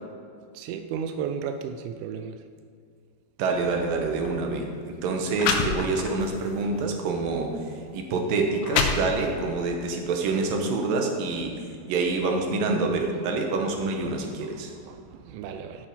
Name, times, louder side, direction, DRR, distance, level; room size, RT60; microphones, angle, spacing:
voice 1, 0.5-2.4 14.9-15.9, right 7 dB, 85° right, 8 dB, 2.1 m, -34 dB
voice 2, 3.4-14.7, right 3 dB, 65° right, 2 dB, 2.6 m, -27 dB
sound 1, 4.1-4.3 5.0-5.1 5.4-6.3 6.8-7.0 7.8-7.9 8.4-9.5, left 5 dB, 80° left, 1.9 m, -27 dB
15.0 x 6.2 x 5.5 m, 2.2 s
omnidirectional pair, 4.9 m